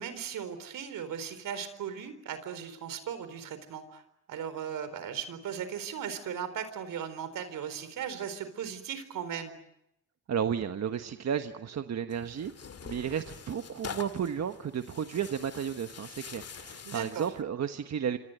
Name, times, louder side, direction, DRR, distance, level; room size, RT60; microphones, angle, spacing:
voice 1, 0.0-4.0 4.3-9.6 16.8-17.3, right 8 dB, 80° right, 11 dB, 4.2 m, -37 dB
voice 2, 10.3-12.5 12.8-18.2, right 8 dB, 55° right, 7 dB, 1.3 m, -33 dB
Tearing, 12.1-17.4, left 6 dB, 50° left, 2.1 m, -45 dB
27.0 x 26.5 x 8.0 m, 0.82 s
cardioid pair, 85°, 32 cm